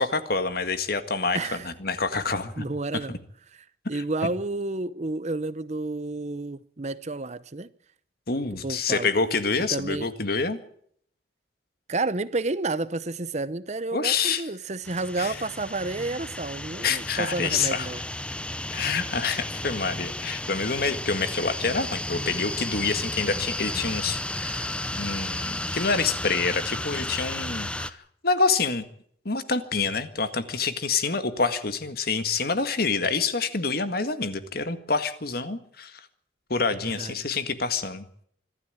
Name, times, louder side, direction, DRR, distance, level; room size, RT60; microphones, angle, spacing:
voice 1, 0.0-2.6 3.1-3.2 3.9-4.0 8.3-10.6 13.9-14.4 15.2-15.3 16.8-17.9 18.7-28.0 28.2-28.8 29.2-36.0 36.5-38.0, left 4 dB, 55° left, 1.8 m, -27 dB
voice 2, 1.3-1.7 2.6-3.2 3.9-7.7 8.6-9.1 9.7-10.1 11.9-18.0 36.8-37.3, right 2 dB, 35° right, 0.8 m, -30 dB
sound 1, 14.8-27.9, left 1 dB, 5° left, 0.8 m, -33 dB
25.0 x 13.0 x 9.1 m
head